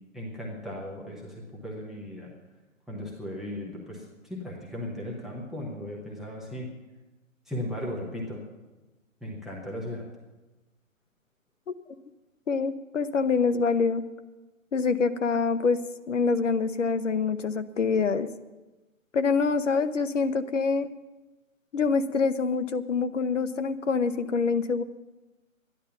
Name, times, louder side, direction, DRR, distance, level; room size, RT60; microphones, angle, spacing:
voice 1, 0.1-2.3 2.9-6.7 7.5-8.4 9.2-10.1, left 1 dB, ahead, -4 dB, 0.8 m, -36 dB
voice 2, 12.5-14.0 14.7-15.8 16.1-18.3 19.1-20.9 21.7-24.8, left 5 dB, 60° left, 10 dB, 0.9 m, -25 dB
12.5 x 10.5 x 6.9 m, 1.1 s
figure-of-eight pair, 135°, 41 cm